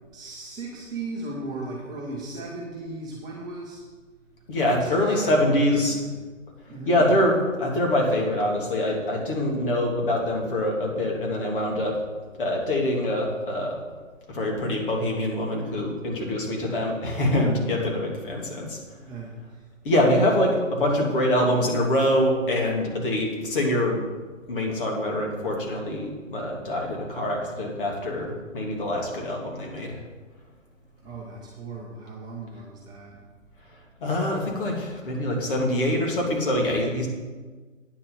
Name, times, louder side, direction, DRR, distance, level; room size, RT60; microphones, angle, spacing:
voice 1, 0.1-3.8 4.7-6.2 6.7-7.1 19.1-20.3 31.0-33.2, right 2 dB, 10° right, -5 dB, 1.2 m, -36 dB
voice 2, 4.5-5.9 6.9-12.0 12.4-13.8 14.3-18.8 19.8-24.0 24.5-29.9 34.0-37.1, left 1 dB, 40° left, -1 dB, 3.1 m, -24 dB
9.5 x 7.0 x 7.4 m, 1.4 s
figure-of-eight pair, 135°, 39 cm